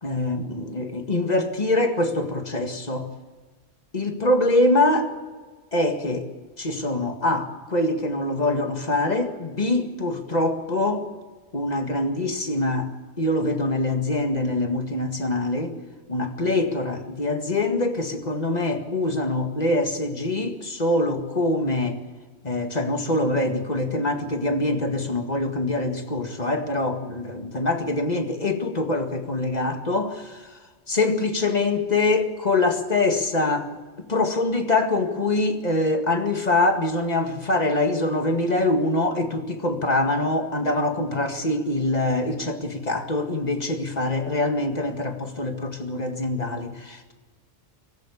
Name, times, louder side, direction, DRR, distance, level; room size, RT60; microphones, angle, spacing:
voice 1, 0.0-3.1 3.9-5.1 5.7-6.3 6.6-11.1 11.5-15.7 16.1-22.0 22.4-30.5 30.9-33.7 34.1-47.1, left 2 dB, 35° left, 5 dB, 2.1 m, -24 dB
24.0 x 14.0 x 8.6 m, 1.3 s
omnidirectional pair, 1.2 m